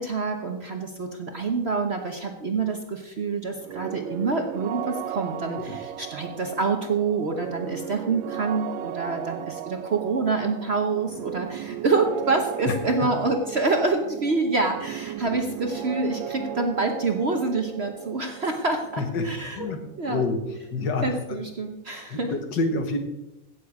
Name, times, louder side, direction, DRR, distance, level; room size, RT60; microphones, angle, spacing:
voice 1, 0.0-19.7 20.0-20.2 21.0-22.4, right 3 dB, 45° right, 4 dB, 0.9 m, -27 dB
sound 1, 3.6-21.3, right 11 dB, 85° right, 1.3 m, -36 dB
voice 2, 19.1-19.8 20.1-20.4 20.7-21.4 22.1-23.0, left 3 dB, 70° left, 6 dB, 2.0 m, -27 dB
16.5 x 7.3 x 4.8 m, 0.91 s
omnidirectional pair, 2.0 m